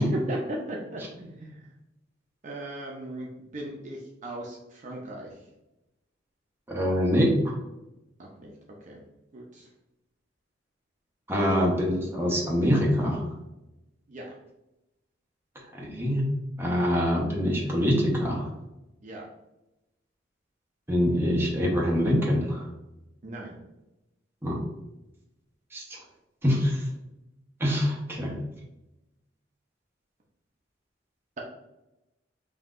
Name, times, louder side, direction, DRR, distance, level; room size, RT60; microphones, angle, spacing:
voice 1, 0.0-1.7 2.4-5.3 8.2-8.5 8.8-9.0 9.3-9.7 14.1-14.4 19.0-19.2 23.2-23.6, right 1 dB, 45° right, -2 dB, 0.6 m, -37 dB
voice 2, 6.7-7.6 11.3-13.3 15.7-16.3 16.6-18.5 20.9-22.7 24.4-24.6 25.7-26.0 26.4-26.8 27.6-28.4, equal, 15° right, -3 dB, 1.0 m, -25 dB
5.6 x 2.7 x 2.5 m, 0.95 s
head